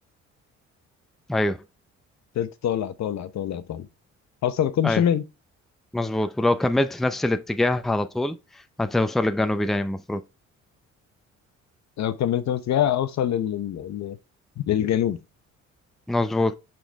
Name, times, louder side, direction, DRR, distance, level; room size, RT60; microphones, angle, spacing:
voice 1, 2.4-3.9 4.4-5.2 12.0-14.2 14.7-15.2, left 10 dB, 65° left, 0.8 m, -24 dB
voice 2, 5.9-8.4 8.8-10.2 16.1-16.5, left 1 dB, ahead, 0.5 m, -24 dB
5.9 x 5.1 x 3.5 m
cardioid pair, 90°, 30 cm